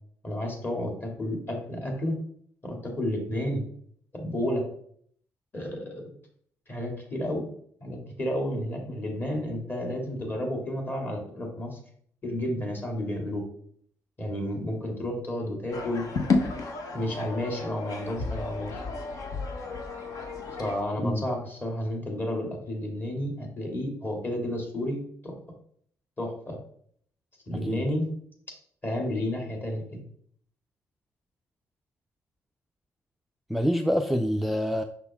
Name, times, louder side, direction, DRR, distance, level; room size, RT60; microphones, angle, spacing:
voice 1, 0.2-2.1 2.6-3.6 4.1-4.6 5.5-6.0 6.7-7.4 7.8-11.8 12.2-13.4 14.2-16.0 16.9-18.8 20.5-25.0 25.2-25.3 26.2-26.6 27.5-28.0 28.8-30.0, left 1 dB, 30° left, 1 dB, 2.4 m, -31 dB
sound 1, 15.7-20.8, left 3 dB, 65° left, 1.1 m, -32 dB
voice 2, 27.5-27.8 33.5-34.8, equal, ahead, 5 dB, 0.4 m, -26 dB
6.0 x 5.9 x 3.6 m, 0.63 s
cardioid pair, 100°, 6 cm